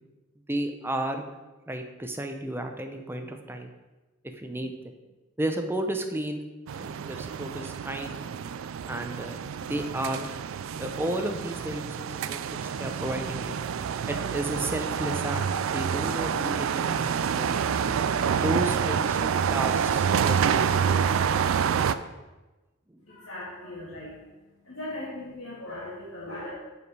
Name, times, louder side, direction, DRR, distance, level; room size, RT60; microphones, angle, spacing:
voice 1, 0.5-1.2 1.7-3.7 4.4-4.7 5.4-6.4 6.8-8.2 8.8-10.3 10.8-12.4 12.8-13.6 14.1-17.5 18.4-21.2, right 1 dB, 10° right, 5 dB, 0.6 m, -33 dB
sound 1, 6.7-22.0, right 7 dB, 70° right, 0.3 m, -27 dB
voice 2, 23.1-24.3 24.6-26.5, left 1 dB, 85° left, -8 dB, 2.0 m, -38 dB
7.7 x 5.0 x 4.8 m, 1.1 s
head